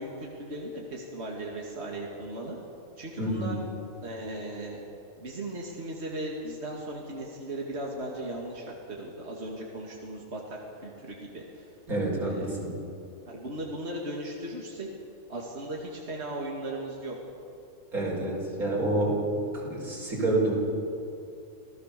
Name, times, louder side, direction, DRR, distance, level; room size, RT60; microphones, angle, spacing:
voice 1, 0.0-2.6 3.0-3.6 4.0-4.8 5.2-11.7 12.2-12.5 13.3-14.9 15.3-17.2, right 1 dB, 45° right, -2 dB, 2.5 m, -37 dB
voice 2, 3.2-3.6 11.9-12.8 17.9-19.2 19.5-20.5, right 2 dB, 80° right, -3 dB, 5.6 m, -28 dB
27.0 x 17.0 x 6.8 m, 2.7 s
omnidirectional pair, 1.5 m